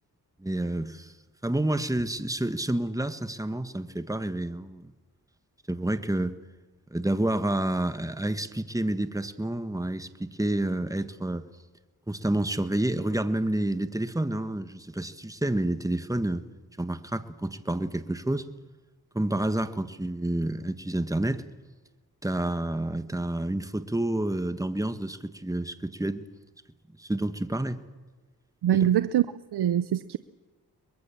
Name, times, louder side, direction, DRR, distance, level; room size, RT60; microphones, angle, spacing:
voice 1, 0.4-1.1 1.4-4.9 5.7-6.3 6.9-11.4 12.1-16.4 16.8-18.5 19.1-21.4 22.2-26.2 27.0-27.8 28.7-28.8, right 1 dB, 10° right, 1.4 m, -29 dB
voice 2, 28.6-29.2 29.5-30.2, right 11 dB, 85° right, 0.6 m, -23 dB
23.5 x 21.5 x 7.2 m
cardioid pair, 55°, 38 cm